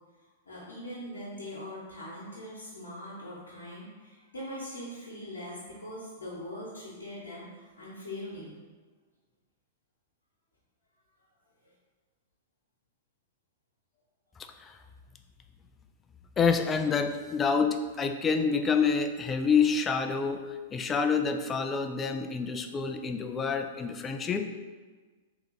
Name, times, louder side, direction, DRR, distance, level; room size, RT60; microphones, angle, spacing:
voice 1, 0.4-8.5 11.6-11.7, left 1 dB, 80° left, -7 dB, 1.0 m, -41 dB
voice 2, 16.4-20.4 20.7-24.5, left 5 dB, 20° left, 6 dB, 0.3 m, -27 dB
3.4 x 2.9 x 3.7 m, 1.4 s
hypercardioid pair, 105°, 0 cm